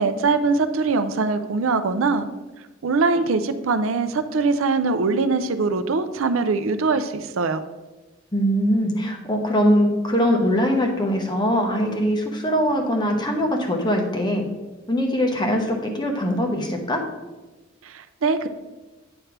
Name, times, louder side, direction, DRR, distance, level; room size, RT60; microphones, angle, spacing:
voice 1, 0.0-2.3 2.8-7.6 17.8-18.5, right 4 dB, 90° right, 10 dB, 0.5 m, -22 dB
voice 2, 8.3-14.5 14.9-17.1, equal, 20° left, 2 dB, 1.0 m, -22 dB
8.9 x 3.3 x 5.9 m, 1.1 s
head